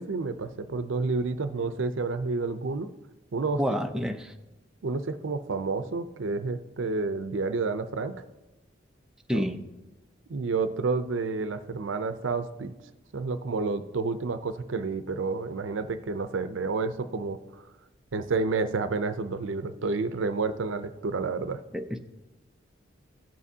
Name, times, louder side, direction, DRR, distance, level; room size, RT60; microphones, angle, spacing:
voice 1, 0.0-2.9 3.3-3.6 4.8-8.1 9.3-9.4 10.3-12.7 13.1-17.7 18.1-21.6, right 4 dB, 80° right, 0.5 m, -30 dB
voice 2, 3.6-4.3 9.3-9.6 21.7-22.0, equal, 5° right, 0.5 m, -28 dB
17.0 x 7.5 x 2.7 m
head